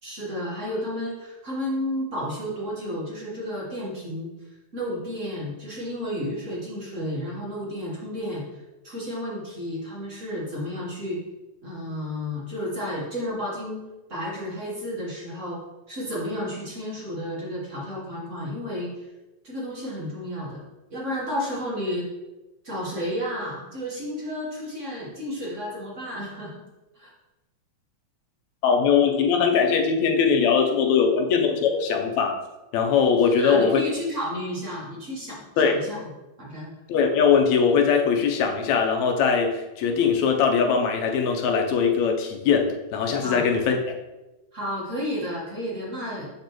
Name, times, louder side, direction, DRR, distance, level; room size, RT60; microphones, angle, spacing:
voice 1, 0.0-4.3 4.7-8.4 8.8-11.2 11.6-13.8 14.1-15.6 15.9-18.9 19.4-20.6 20.9-22.1 22.6-26.6 26.9-27.1 33.4-35.4 35.8-36.1 36.4-36.7 43.2-43.4 44.5-46.3, equal, 40° right, -5 dB, 1.2 m, -32 dB
voice 2, 28.6-32.3 32.7-33.8 35.6-35.8 36.9-43.8, left 6 dB, 75° left, 3 dB, 2.0 m, -21 dB
6.8 x 5.2 x 3.0 m, 1.0 s
omnidirectional pair, 3.3 m